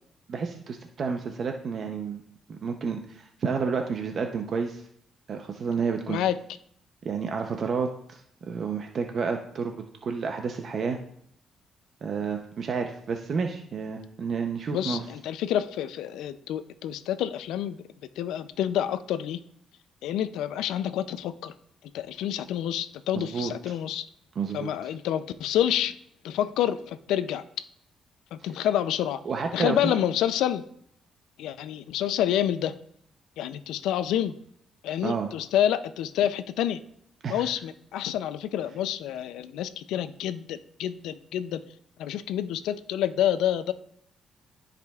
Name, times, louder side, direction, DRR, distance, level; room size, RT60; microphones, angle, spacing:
voice 1, 0.3-2.2 2.5-4.9 5.3-6.2 7.0-9.7 10.0-11.0 12.0-15.0 23.1-23.5 24.4-24.7 29.3-29.9 35.0-35.3 37.2-37.5, right 5 dB, 50° right, 4 dB, 0.6 m, -30 dB
voice 2, 14.7-17.8 18.2-19.4 20.0-21.5 21.9-24.0 24.5-25.9 26.2-27.4 28.3-29.2 29.5-30.6 31.4-32.7 33.4-34.4 34.8-36.8 37.3-41.6 42.0-43.7, left 11 dB, 90° left, 13 dB, 0.4 m, -28 dB
13.0 x 5.0 x 2.4 m, 0.68 s
cardioid pair, 90°, 0 cm